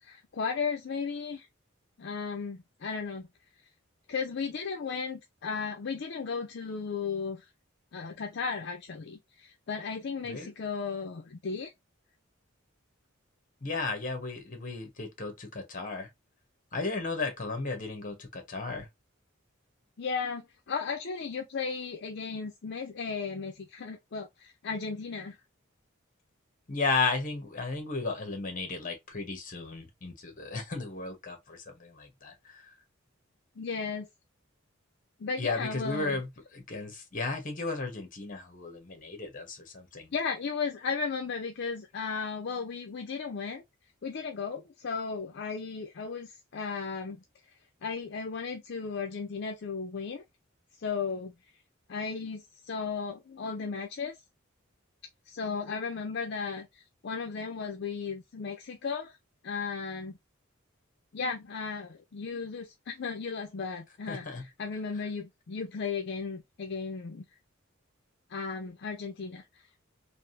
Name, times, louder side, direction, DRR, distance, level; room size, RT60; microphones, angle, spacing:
voice 1, 0.0-1.5 2.0-3.3 4.1-7.4 7.9-11.7 20.0-25.4 33.6-34.1 35.2-36.2 40.1-43.6 44.0-47.2 47.8-50.2 50.8-51.3 51.9-54.2 55.3-59.2 59.4-60.2 61.1-67.2 68.3-69.4, left 5 dB, 55° left, 0.5 m, -35 dB
voice 2, 13.6-16.1 16.7-18.9 26.7-32.7 35.4-40.1 64.1-64.4, left 3 dB, 40° left, 1.0 m, -34 dB
3.4 x 2.5 x 2.5 m
head